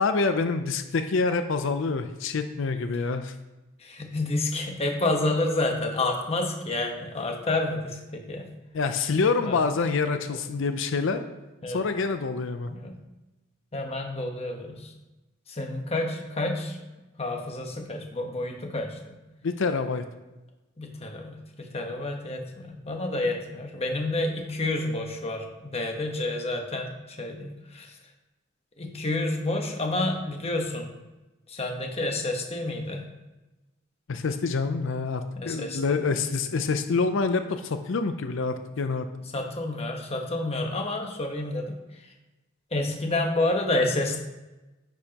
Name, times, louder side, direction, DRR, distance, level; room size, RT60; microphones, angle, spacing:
voice 1, 0.0-3.3 8.7-11.2 11.7-12.7 19.4-20.0 34.1-39.1, left 4 dB, 60° left, 8 dB, 0.5 m, -26 dB
voice 2, 3.8-8.5 9.4-9.6 11.6-11.8 12.7-12.9 13.7-14.9 15.5-16.8 17.2-19.2 20.8-28.0 28.8-30.9 31.5-33.0 35.4-36.2 39.3-41.7 42.0-42.1 42.7-44.2, left 2 dB, 30° left, 2 dB, 1.1 m, -29 dB
10.0 x 6.3 x 2.9 m, 1.1 s
head